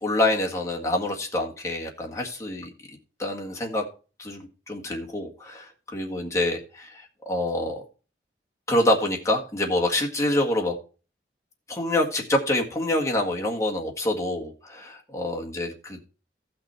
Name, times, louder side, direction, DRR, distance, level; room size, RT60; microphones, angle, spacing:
voice 1, 0.0-2.7 3.2-3.8 4.2-7.8 8.7-10.7 11.7-16.0, left 1 dB, 15° left, 0 dB, 1.7 m, -26 dB
14.5 x 6.1 x 4.4 m, 0.36 s
head